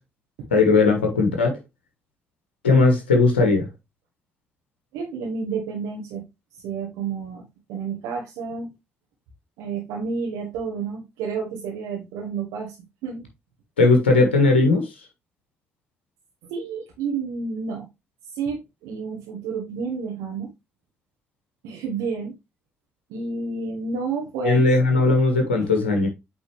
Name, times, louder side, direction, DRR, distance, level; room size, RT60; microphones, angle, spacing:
voice 1, 0.5-1.6 2.6-3.7 13.8-14.9 24.4-26.1, left 3 dB, 85° left, 1.5 m, -18 dB
voice 2, 4.9-6.2 6.5-7.4 7.7-8.7 9.6-12.8 13.0-13.3 16.5-17.9 18.3-20.5 21.6-22.3 23.1-24.6, right 5 dB, 70° right, 1.3 m, -30 dB
8.4 x 4.0 x 3.2 m
figure-of-eight pair, 45°, 6 cm